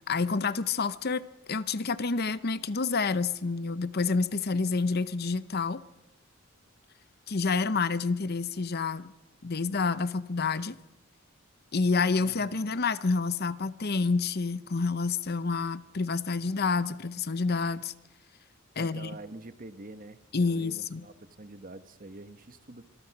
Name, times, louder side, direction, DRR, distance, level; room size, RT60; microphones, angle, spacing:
voice 1, 0.1-1.2 1.5-5.8 7.3-9.1 9.4-10.8 11.7-17.9 18.8-19.1 20.3-21.0, left 4 dB, 50° left, 15 dB, 0.8 m, -28 dB
voice 2, 12.2-12.7 18.7-22.9, right 2 dB, 45° right, 11 dB, 1.2 m, -46 dB
25.5 x 22.5 x 6.0 m, 1.0 s
head